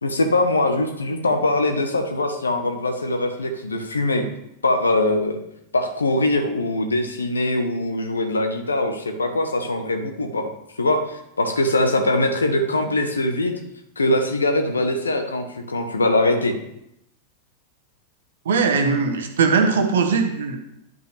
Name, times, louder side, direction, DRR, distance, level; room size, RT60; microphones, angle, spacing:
voice 1, 0.0-4.3 4.6-5.4 5.7-10.5 10.8-13.5 14.0-16.5, left 2 dB, 75° left, 7 dB, 1.0 m, -22 dB
voice 2, 18.4-20.6, right 5 dB, 65° right, 6 dB, 1.0 m, -20 dB
10.5 x 5.2 x 3.3 m, 0.79 s
figure-of-eight pair, 90°, 0 cm